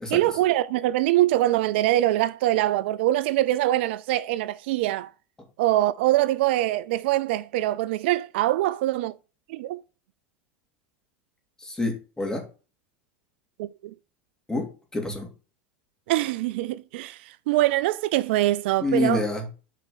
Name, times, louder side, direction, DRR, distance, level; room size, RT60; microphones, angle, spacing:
voice 1, 0.1-5.1 5.6-9.1 9.5-9.8 13.6-13.9 16.1-19.3, right 15 dB, 75° right, 0.4 m, -23 dB
voice 2, 11.6-12.4 14.5-15.3 18.8-19.4, left 2 dB, 10° left, 3.1 m, -27 dB
8.3 x 5.0 x 4.1 m
hypercardioid pair, 100°, 6 cm